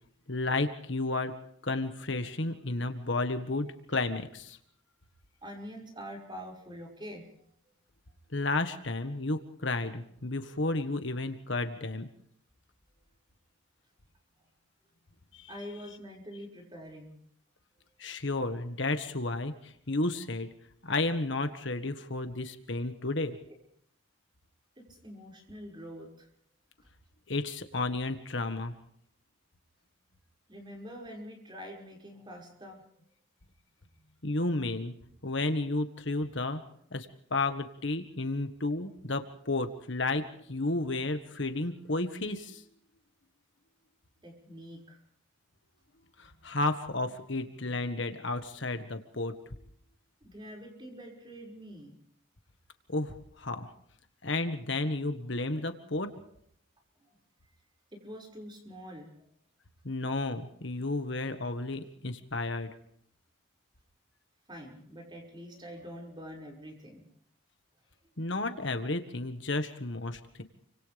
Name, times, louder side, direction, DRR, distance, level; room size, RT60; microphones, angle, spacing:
voice 1, 0.3-1.3 1.6-4.6 8.3-12.1 15.3-15.5 18.0-20.5 20.8-23.4 27.3-28.7 34.2-34.9 35.2-36.6 36.9-42.6 46.2-49.3 52.9-53.7 54.2-56.1 59.8-62.7 68.2-70.4, left 2 dB, 60° left, 7 dB, 1.6 m, -32 dB
voice 2, 5.4-7.3 7.7-7.8 15.5-17.2 24.8-26.3 30.5-32.8 44.2-45.0 50.2-52.0 55.5-55.7 56.1-56.3 57.1-57.2 57.9-59.3 64.5-67.1, equal, 20° right, 0 dB, 5.8 m, -45 dB
29.5 x 25.5 x 3.5 m, 0.67 s
head